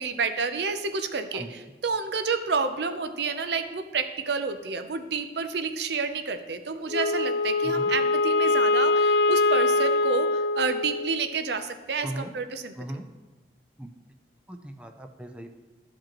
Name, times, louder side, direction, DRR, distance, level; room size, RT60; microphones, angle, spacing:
voice 1, 0.0-12.7, right 5 dB, 65° right, 9 dB, 0.6 m, -29 dB
voice 2, 1.3-1.7 7.6-7.9 12.0-12.3 12.8-13.0 13.8-13.9 14.5-15.5, right 1 dB, 5° right, 5 dB, 0.5 m, -38 dB
Wind instrument woodwind instrument, 6.9-11.3, left 3 dB, 60° left, 0.3 m, -23 dB
13.5 x 5.1 x 3.0 m, 1.3 s
head